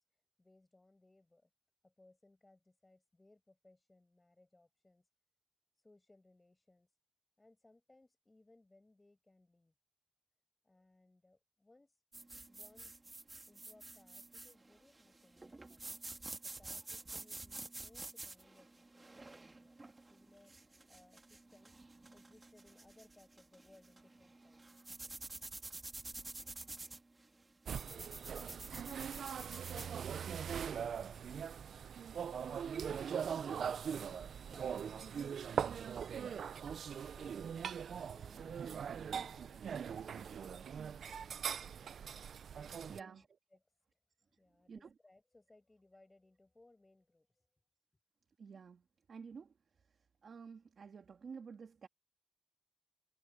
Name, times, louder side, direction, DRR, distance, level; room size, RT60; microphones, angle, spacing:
voice 1, 0.4-1.5 1.8-5.1 5.8-6.9 7.4-9.7 10.6-12.0 12.5-12.9 13.5-16.0 16.4-21.8 22.1-24.9 33.3-37.7 38.1-43.3 43.5-43.6 44.4-47.5, left 2 dB, 20° left, 6.2 m, -66 dB
sound 1, 12.1-29.9, right 2 dB, 25° right, 2.1 m, -50 dB
sound 2, 27.7-43.0, right 7 dB, 80° right, 0.4 m, -41 dB
voice 2, 42.9-43.2 44.7-44.9 48.4-48.8 49.1-49.5 50.2-51.9, right 5 dB, 60° right, 2.6 m, -50 dB
wide cardioid pair, 130°, 0 cm